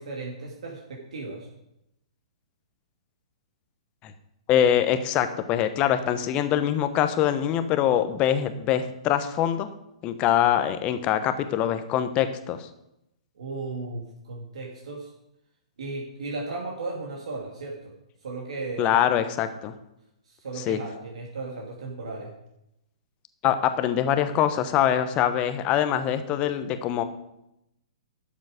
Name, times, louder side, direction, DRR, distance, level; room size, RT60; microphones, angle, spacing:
voice 1, 0.0-1.5 13.3-15.1 15.8-17.9 18.2-19.0 20.3-22.3, right 3 dB, 65° right, -1 dB, 2.4 m, -35 dB
voice 2, 4.5-9.7 10.0-12.7 18.8-19.7 20.7-20.8 23.4-27.0, left 10 dB, 30° left, 10 dB, 1.0 m, -24 dB
12.0 x 7.4 x 5.1 m, 0.84 s
figure-of-eight pair, 120°, 4 cm